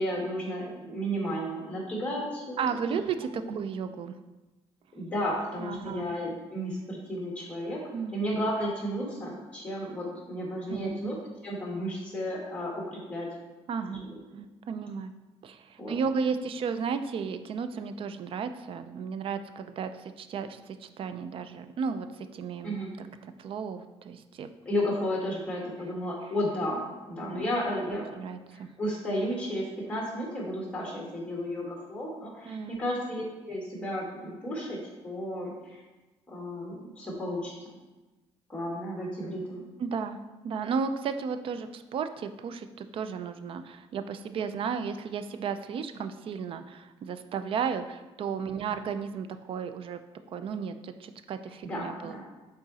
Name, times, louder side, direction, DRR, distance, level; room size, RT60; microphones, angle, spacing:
voice 1, 0.0-3.0 4.9-7.8 8.1-11.2 11.4-13.3 14.1-14.4 15.8-16.3 22.6-22.9 24.7-28.1 28.5-35.8 36.3-37.5 38.5-39.7 48.5-48.7 51.6-52.2, equal, 10° left, -3 dB, 1.9 m, -33 dB
voice 2, 2.6-4.2 5.6-6.1 7.9-8.2 10.7-11.0 13.7-14.1 14.7-15.1 15.4-24.5 27.2-28.7 32.5-32.8 39.8-50.0 50.3-52.2, right 6 dB, 50° right, 10 dB, 0.4 m, -34 dB
6.2 x 3.9 x 4.1 m, 1.1 s
cardioid pair, 125°, 12 cm